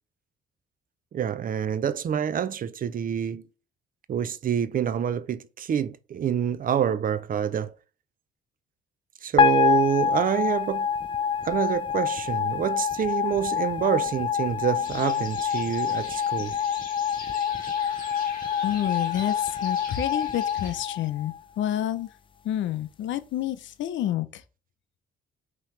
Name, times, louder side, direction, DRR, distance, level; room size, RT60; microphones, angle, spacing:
voice 1, 1.1-3.4 4.1-7.7 9.2-10.9 11.4-16.5, right 8 dB, 45° right, 0.5 m, -27 dB
sound 1, 9.4-21.7, left 7 dB, 25° left, 0.4 m, -26 dB
sound 2, 14.8-20.7, left 3 dB, 45° left, 1.9 m, -43 dB
voice 2, 18.6-22.1 22.4-24.4, left 11 dB, 70° left, 0.6 m, -29 dB
5.6 x 3.0 x 3.1 m
cardioid pair, 90°, 20 cm